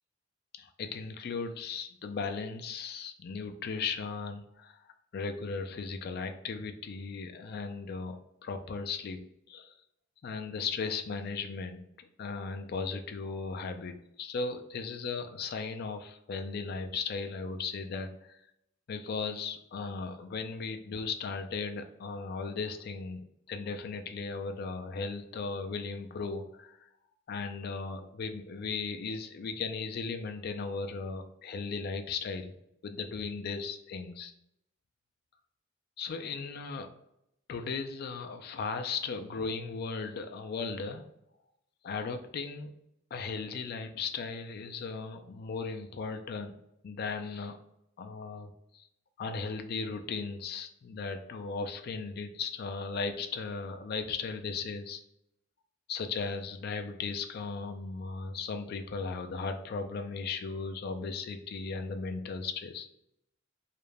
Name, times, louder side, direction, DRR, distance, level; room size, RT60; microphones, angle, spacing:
voice 1, 0.6-4.8 5.1-9.7 10.2-18.3 18.9-26.8 27.3-32.5 32.8-34.3 36.0-36.9 37.5-41.0 41.8-42.7 43.1-46.6 46.8-47.6 48.0-48.9 49.2-55.0 55.9-62.9, left 4 dB, 50° left, 7 dB, 0.3 m, -37 dB
2.4 x 2.1 x 3.1 m, 0.80 s
head